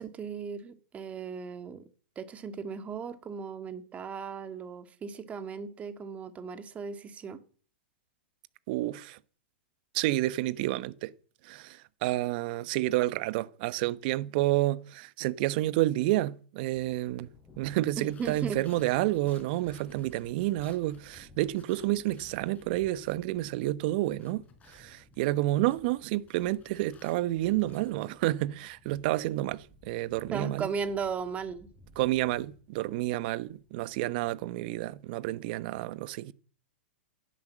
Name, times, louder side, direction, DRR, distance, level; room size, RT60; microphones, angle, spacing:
voice 1, 0.0-1.8 2.2-7.4 18.0-18.6 30.3-31.7, right 6 dB, 20° right, 2.1 m, -36 dB
voice 2, 8.7-9.2 9.9-11.1 11.4-17.3 17.6-30.7 32.0-36.3, right 16 dB, 50° right, 1.1 m, -30 dB
Thunder, 16.6-35.0, left 1 dB, 5° left, 6.1 m, -58 dB
sound 1, 17.9-23.2 23.5-28.1, left 6 dB, 25° left, 4.6 m, -60 dB
15.5 x 11.0 x 7.5 m
hypercardioid pair, 115°, 6 cm